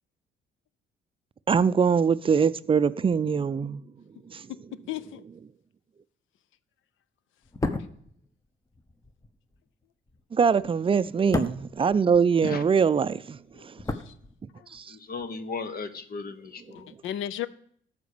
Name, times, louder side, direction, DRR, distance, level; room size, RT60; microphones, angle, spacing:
voice 1, 1.5-3.8 4.2-4.5 10.3-13.8 14.4-15.0 16.7-16.8, right 6 dB, 25° right, 0.4 m, -23 dB
voice 2, 4.9-5.2 13.6-14.1 14.6-14.7 17.0-17.5, left 11 dB, 80° left, 0.6 m, -35 dB
sound 1, 7.4-12.7 13.0-14.8 15.1-15.3, left 2 dB, 15° left, 0.9 m, -35 dB
voice 3, 14.9-16.9, left 4 dB, 50° left, 1.0 m, -36 dB
13.0 x 5.1 x 6.7 m
cardioid pair, 90°, 20 cm